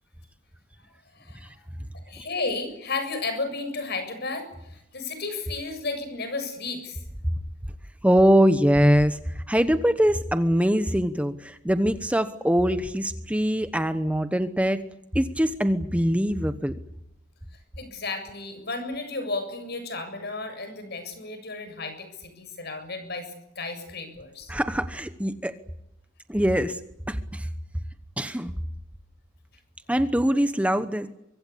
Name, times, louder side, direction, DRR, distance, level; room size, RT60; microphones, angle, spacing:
voice 1, 1.1-1.6 2.0-7.0 17.8-24.5, left 3 dB, 55° left, 9 dB, 7.3 m, -33 dB
voice 2, 8.0-14.8 15.1-16.7 24.5-25.5 26.3-26.8 27.1-27.5 28.2-28.5 29.9-31.1, equal, 5° right, 10 dB, 1.0 m, -23 dB
24.5 x 24.0 x 8.5 m, 0.85 s
head